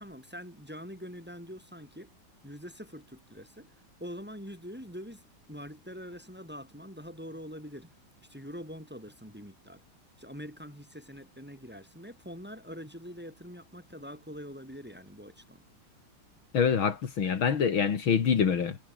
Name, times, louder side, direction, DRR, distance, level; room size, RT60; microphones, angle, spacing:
voice 1, 0.0-2.1 2.4-3.7 4.0-5.2 5.5-7.9 8.3-9.8 10.2-15.6, equal, 5° right, 5.3 m, -44 dB
voice 2, 16.5-18.8, left 6 dB, 70° left, 2.8 m, -25 dB
omnidirectional pair, 2.3 m